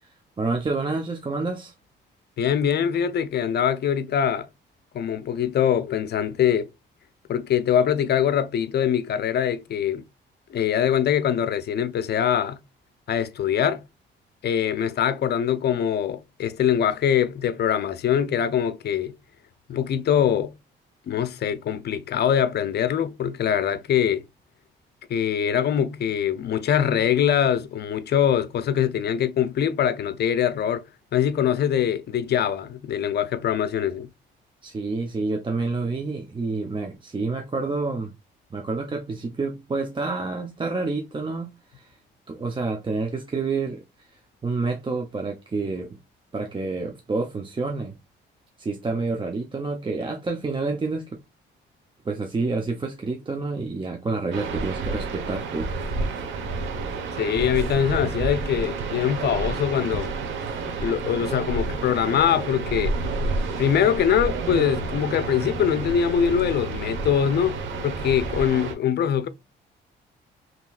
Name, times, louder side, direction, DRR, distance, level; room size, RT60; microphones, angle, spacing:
voice 1, 0.4-1.7 34.6-38.1 38.5-41.5 41.8-41.9 42.3-43.8 44.4-46.0 46.3-48.0 48.6-51.0 52.0-55.7, right 3 dB, 25° right, 0.7 m, -28 dB
voice 2, 2.4-4.5 4.9-6.7 7.3-10.0 10.5-12.6 13.1-13.8 14.4-19.2 19.7-20.5 21.1-24.2 25.1-30.9 31.1-34.1 57.2-60.1 60.6-63.0 63.6-69.3, left 9 dB, 55° left, 0.6 m, -23 dB
sound 1, 54.3-68.7, right 3 dB, 75° right, 1.1 m, -30 dB
5.6 x 2.9 x 2.4 m
cardioid pair, 90°, 20 cm